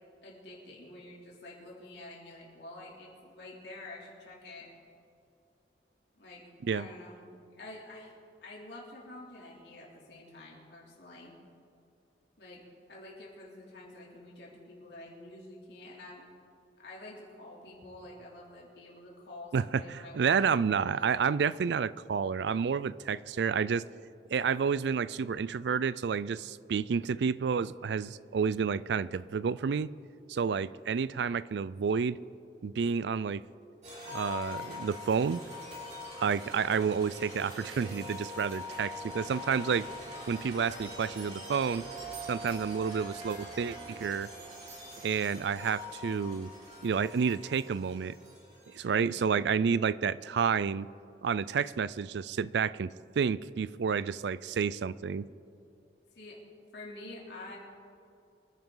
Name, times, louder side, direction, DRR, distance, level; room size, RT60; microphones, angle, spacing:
voice 1, 0.2-4.7 6.1-6.4 6.7-7.2 7.5-8.1 8.4-11.3 12.4-12.6 12.9-16.2 16.8-20.5 48.9-49.3 56.1-56.4 56.7-57.6, left 2 dB, 75° left, -4 dB, 3.2 m, -48 dB
voice 2, 19.5-23.8 24.3-29.9 30.3-32.2 32.6-33.4 34.1-35.4 36.2-39.9 40.3-41.8 42.3-44.3 45.0-46.5 46.8-48.2 48.7-50.9 51.2-55.3, right 6 dB, 75° right, 19 dB, 0.4 m, -30 dB
sound 1, 33.8-48.9, left 1 dB, 40° right, 3.7 m, -43 dB
24.5 x 10.5 x 3.9 m, 2.6 s
head